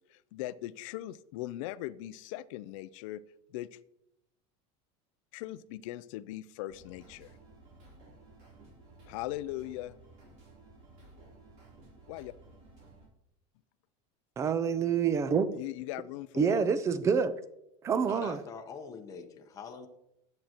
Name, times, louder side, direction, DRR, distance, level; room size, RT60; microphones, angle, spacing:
voice 1, 0.1-3.2 3.5-3.8 5.3-7.3 9.1-9.9 12.1-12.3 15.5-16.6, left 15 dB, 70° left, 0.4 m, -39 dB
sound 1, 6.7-13.1, right 2 dB, 45° right, 3.6 m, -56 dB
voice 2, 14.4-15.5 16.4-17.3 17.8-18.4, right 6 dB, 15° right, 0.4 m, -27 dB
voice 3, 18.0-19.9, left 5 dB, 20° left, 0.8 m, -44 dB
10.0 x 7.7 x 2.9 m
supercardioid pair, 165°, 17 cm